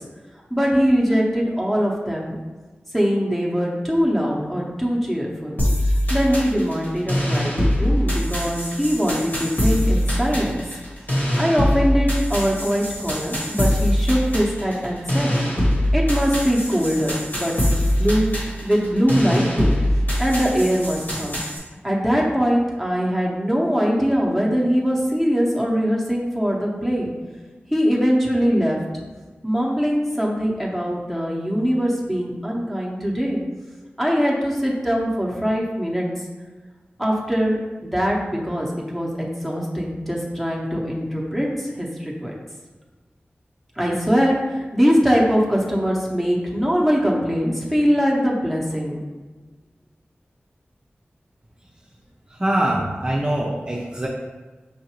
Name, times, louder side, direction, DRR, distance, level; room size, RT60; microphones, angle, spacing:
voice 1, 0.5-2.4 2.9-5.6 6.1-10.6 11.4-15.3 15.9-18.3 18.6-19.7 20.2-21.4 21.8-27.1 27.7-28.8 29.4-33.4 34.0-36.1 37.0-42.3 43.8-49.0, equal, 5° left, -3 dB, 0.8 m, -22 dB
sound 1, 5.6-21.6, equal, 50° left, 1.3 m, -23 dB
voice 2, 52.3-54.1, right 1 dB, 25° right, -3 dB, 0.5 m, -23 dB
5.5 x 2.5 x 2.9 m, 1.3 s
wide cardioid pair, 90°, 4 cm